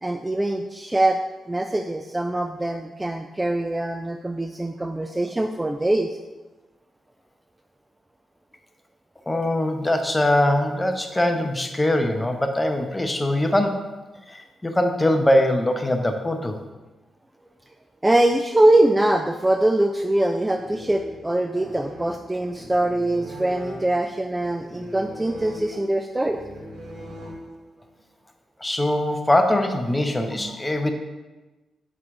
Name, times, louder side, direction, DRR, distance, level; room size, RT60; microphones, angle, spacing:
voice 1, 0.0-1.2 1.5-6.2 18.0-26.4 30.3-30.6, right 1 dB, 15° right, 6 dB, 0.4 m, -23 dB
voice 2, 9.3-13.9 14.3-16.6 21.6-21.7 28.6-30.9, left 1 dB, 20° left, 5 dB, 0.8 m, -22 dB
sound 1, 20.3-27.8, equal, 60° right, 2.1 m, -40 dB
5.9 x 4.6 x 3.8 m, 1.2 s
supercardioid pair, 50°, 0 cm